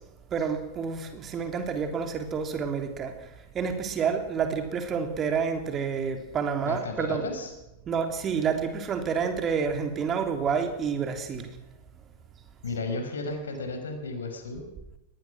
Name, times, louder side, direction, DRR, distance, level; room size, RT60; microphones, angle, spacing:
voice 1, 0.3-3.3 3.5-7.2 7.9-11.5, right 6 dB, 25° right, 6 dB, 3.2 m, -29 dB
voice 2, 6.7-7.5 12.6-14.6, left 3 dB, 70° left, 6 dB, 5.4 m, -33 dB
22.0 x 20.0 x 6.3 m, 0.98 s
figure-of-eight pair, 90°, 0 cm